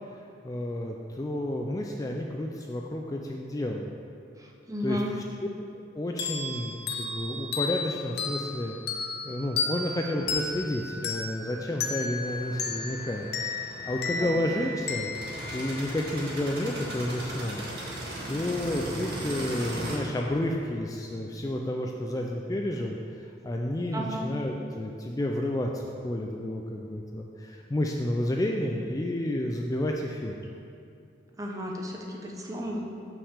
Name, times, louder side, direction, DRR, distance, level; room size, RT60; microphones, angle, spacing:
voice 1, 0.4-3.8 4.8-5.0 5.9-8.8 9.2-15.1 15.5-18.0 18.3-30.4, left 1 dB, 20° left, 1 dB, 0.3 m, -31 dB
voice 2, 4.4-5.1 14.2-14.3 23.9-24.3 31.4-32.8, equal, 20° right, 0 dB, 0.8 m, -34 dB
sound 1, 6.2-16.5, left 4 dB, 60° left, 0.8 m, -34 dB
sound 2, 12.2-20.0, right 1 dB, 60° right, 1.7 m, -38 dB
5.7 x 5.4 x 6.4 m, 2.5 s
head